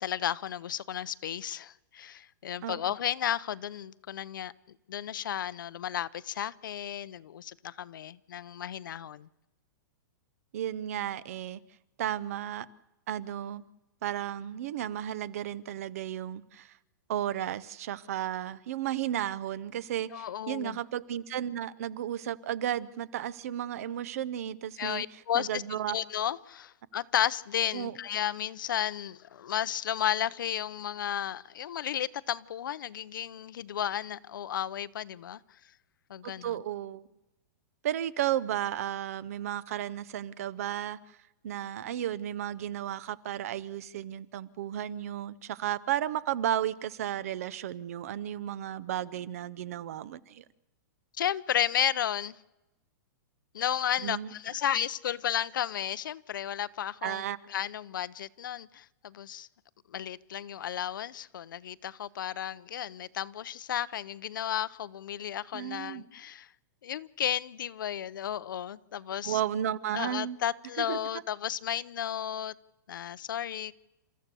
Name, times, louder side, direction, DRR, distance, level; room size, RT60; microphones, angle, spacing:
voice 1, 0.0-4.5 4.9-9.3 20.1-20.8 24.8-35.4 36.1-36.6 51.2-52.4 53.5-57.2 57.5-59.5 59.9-66.5 66.8-69.4 69.9-72.5 72.9-73.7, left 10 dB, 75° left, 0.7 m, -33 dB
voice 2, 10.5-11.6 12.0-12.7 13.1-13.6 14.0-16.7 17.1-26.0 27.7-28.0 36.2-37.1 37.8-41.0 41.4-50.4 54.0-54.3 57.0-57.4 65.5-66.0 69.2-70.4 70.8-71.0, right 11 dB, 45° right, 0.6 m, -33 dB
29.5 x 14.0 x 6.9 m
supercardioid pair, 175°, 11 cm